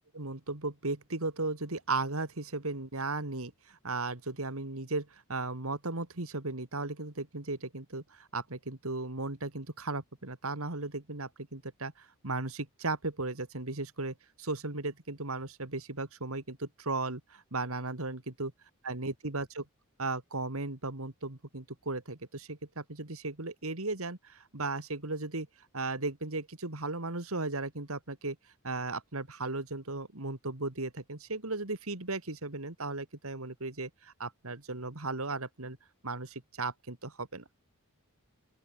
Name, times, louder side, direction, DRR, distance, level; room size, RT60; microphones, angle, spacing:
voice 1, 0.1-18.5 18.8-19.6 20.0-25.5 25.7-28.4 28.6-35.8 36.0-37.4, right 3 dB, 75° right, 2.6 m, -36 dB
open air
head